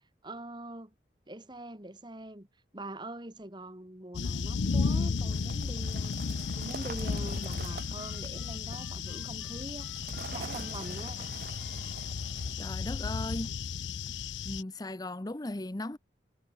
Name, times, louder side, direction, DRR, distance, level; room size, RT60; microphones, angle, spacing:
voice 1, 0.2-0.9 1.3-2.5 2.7-6.2 6.6-11.3, right 1 dB, 25° right, 2.1 m, -44 dB
sound 1, 4.1-14.6, left 5 dB, 85° left, 0.6 m, -34 dB
sound 2, 4.6-13.5, right 5 dB, 55° right, 0.6 m, -47 dB
Harmonica, 6.5-12.1, right 1 dB, 5° right, 7.2 m, -61 dB
voice 2, 12.6-13.5 14.1-14.2 14.4-16.0, left 2 dB, 20° left, 0.7 m, -37 dB
head